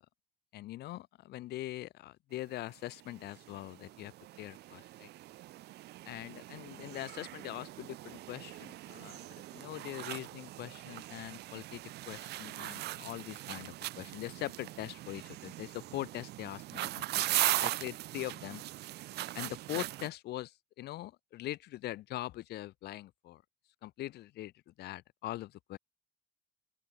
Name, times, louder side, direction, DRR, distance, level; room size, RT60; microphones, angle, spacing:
voice 1, 0.5-4.1 4.4-5.1 6.1-11.8 12.1-18.6 19.4-23.4 23.8-25.8, left 15 dB, 75° left, 3.5 m, -42 dB
sound 1, 2.6-2.7 3.0-20.1, right 16 dB, 75° right, 2.6 m, -39 dB
open air
cardioid pair, 110°, 17 cm